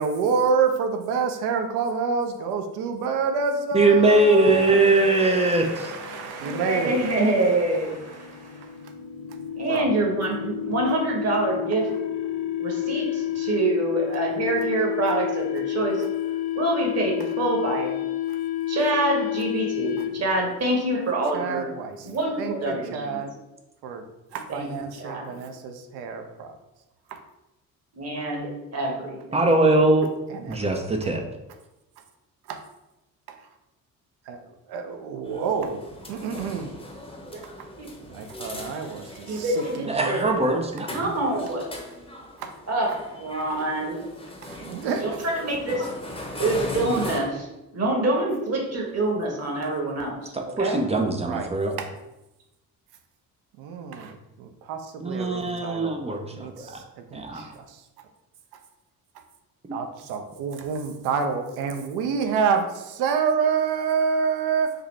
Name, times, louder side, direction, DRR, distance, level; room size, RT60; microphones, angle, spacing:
voice 1, 0.0-7.3 9.7-9.9 21.3-22.1 22.4-23.3 23.8-24.0 24.3-26.5 27.1-27.2 30.3-30.7 32.5-32.6 33.3-33.4 34.3-34.4 34.7-35.8 36.1-36.7 38.1-40.3 42.4-42.5 44.4-45.2 51.3-51.5 51.8-51.9 53.6-57.8 59.7-64.7, right 5 dB, 55° right, 6 dB, 0.6 m, -28 dB
voice 2, 3.7-5.9 29.3-30.1 30.5-31.2 39.9-40.9 50.3-51.7 55.0-56.8 57.1-57.5, right 2 dB, 15° right, 3 dB, 0.4 m, -21 dB
sound 1, 4.5-20.4, left 11 dB, 60° left, 0.5 m, -31 dB
voice 3, 5.5-8.2 9.6-11.9 12.6-16.0 16.5-18.0 18.7-21.7 22.0-23.2 24.5-24.7 25.0-25.4 27.9-29.4 37.3-37.4 37.8-37.9 39.3-40.2 40.9-41.7 42.7-44.0 45.0-45.9 46.4-47.5 47.7-50.8, right 2 dB, 30° right, 0 dB, 1.2 m, -26 dB
sound 2, 35.2-47.2, left 1 dB, 10° left, 0.8 m, -39 dB
3.9 x 2.7 x 3.1 m, 0.96 s
figure-of-eight pair, 45°, 48 cm